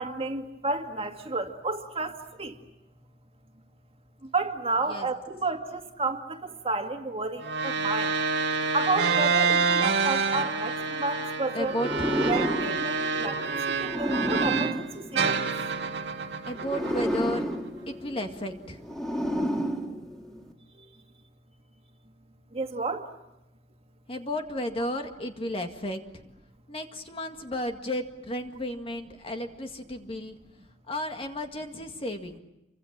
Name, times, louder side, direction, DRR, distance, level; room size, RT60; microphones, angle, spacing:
voice 1, 0.0-2.6 4.3-8.2 8.7-11.8 12.3-15.5 22.5-23.1, right 3 dB, 35° right, 4 dB, 2.2 m, -31 dB
sound 1, 7.4-14.8 15.2-17.5, right 5 dB, 75° right, 2.1 m, -28 dB
voice 2, 11.5-12.1 16.5-17.5 17.9-18.8 24.1-26.0 26.7-30.4 30.9-32.4, left 1 dB, 30° left, 5 dB, 2.0 m, -33 dB
sound 2, 11.7-15.9 16.6-20.5, equal, 5° left, 2.8 m, -31 dB
28.5 x 25.0 x 7.5 m, 0.90 s
head